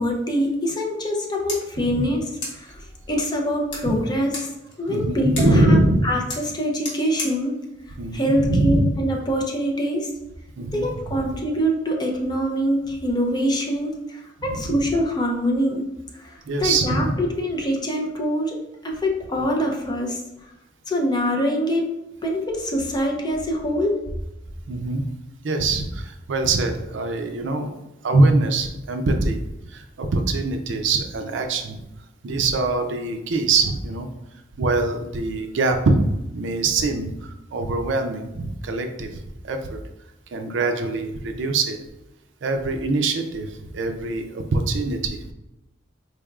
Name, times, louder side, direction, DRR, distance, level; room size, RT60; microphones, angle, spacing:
voice 1, 0.0-4.5 4.8-5.8 6.0-7.6 8.1-10.1 10.7-15.8 16.2-20.2 20.9-22.0 22.2-24.0, equal, 20° left, 0 dB, 0.6 m, -24 dB
sound 1, 1.1-9.1, left 2 dB, 65° left, 1.3 m, -39 dB
voice 2, 4.9-6.0 8.0-8.9 10.6-11.2 14.5-14.8 16.5-17.1 24.7-25.0 25.4-27.7 28.0-29.4 29.7-31.8 32.2-34.1 34.6-36.0 36.3-39.2 39.4-39.8 40.3-41.8 42.4-45.3, right 2 dB, 70° right, 6 dB, 0.5 m, -23 dB
4.2 x 3.3 x 2.3 m, 0.93 s
head